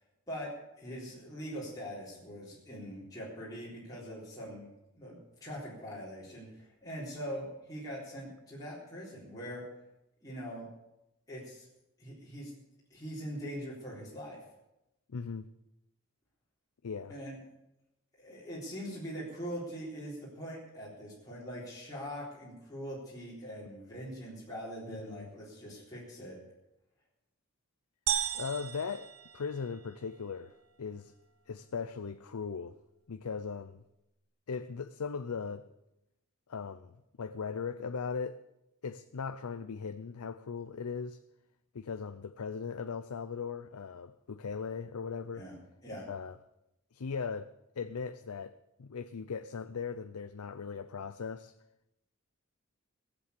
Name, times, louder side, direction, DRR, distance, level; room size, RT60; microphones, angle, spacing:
voice 1, 0.8-4.7 4.9-9.6 10.2-10.7 11.3-11.7 12.0-12.5 12.9-14.4 17.1-17.4 18.2-26.4 45.3-45.5 45.8-46.1, equal, 15° left, 3.8 m, -42 dB
voice 2, 15.1-15.5 16.8-17.1 24.9-25.3 28.3-30.5 30.8-31.1 31.5-32.8 33.1-33.8 34.5-35.7 36.5-38.4 38.8-41.2 41.7-45.5 46.1-46.4 46.9-47.5 47.7-51.5, left 5 dB, 90° left, 0.5 m, -38 dB
sound 1, 28.1-30.0, right 10 dB, 75° right, 1.1 m, -35 dB
16.5 x 7.7 x 8.1 m
head